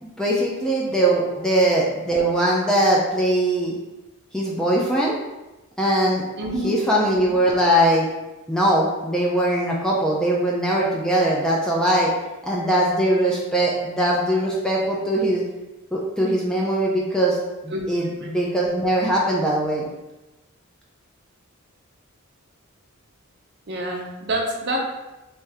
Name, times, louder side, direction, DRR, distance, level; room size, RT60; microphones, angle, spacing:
voice 1, 0.0-3.7 4.3-5.2 5.8-6.2 6.6-8.1 8.5-12.1 12.4-15.4 15.9-17.4 17.6-19.9, right 1 dB, 5° left, -4 dB, 0.4 m, -21 dB
voice 2, 6.4-6.7 17.7-17.9 18.2-18.3 23.7-24.8, right 1 dB, 50° right, 0 dB, 0.6 m, -27 dB
3.4 x 2.7 x 3.3 m, 1.0 s
head